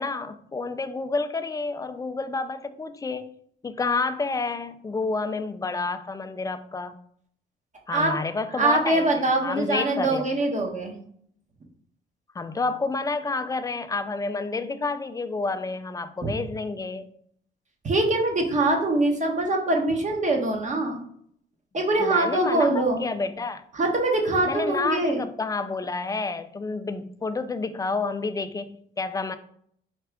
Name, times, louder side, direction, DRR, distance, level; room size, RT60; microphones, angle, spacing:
voice 1, 0.0-3.3 3.6-7.0 7.9-10.3 12.4-17.1 22.0-23.6 24.5-29.4, left 3 dB, 20° left, 10 dB, 0.3 m, -29 dB
voice 2, 8.6-10.9 16.2-16.3 17.8-21.1 21.7-23.0 23.7-25.2, right 2 dB, 40° right, 1 dB, 1.0 m, -23 dB
4.3 x 2.4 x 3.4 m, 0.65 s
cardioid pair, 90°, 20 cm